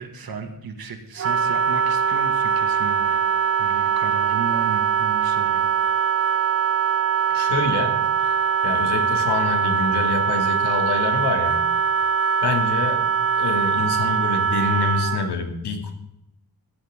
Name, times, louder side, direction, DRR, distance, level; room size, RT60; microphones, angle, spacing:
voice 1, 0.0-3.2 3.6-5.7, right 4 dB, 65° right, 5 dB, 2.0 m, -34 dB
Wind instrument woodwind instrument, 1.2-15.3, right 7 dB, 40° right, 0.7 m, -22 dB
voice 2, 7.3-8.3 8.6-11.6 12.4-15.9, left 4 dB, 90° left, 5 dB, 2.5 m, -26 dB
16.0 x 14.0 x 3.7 m, 0.83 s
wide cardioid pair, 125°, 39 cm